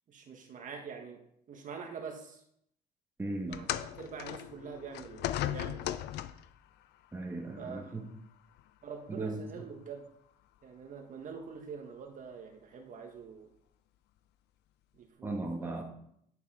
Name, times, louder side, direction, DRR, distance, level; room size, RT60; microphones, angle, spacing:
voice 1, 0.1-1.2 1.5-2.4 3.5-5.8 7.6-8.1 8.8-10.1 10.6-13.5 14.9-15.3 15.7-15.8, right 6 dB, 50° right, 3 dB, 1.6 m, -45 dB
voice 2, 3.2-3.6 7.1-8.1 9.1-9.7 15.2-15.8, right 2 dB, 15° right, 0 dB, 1.9 m, -37 dB
sound 1, 3.5-6.6 7.6-7.7 8.6-8.7, left 13 dB, 80° left, 0.6 m, -37 dB
10.5 x 6.9 x 5.0 m, 0.71 s
cardioid pair, 110°, 17 cm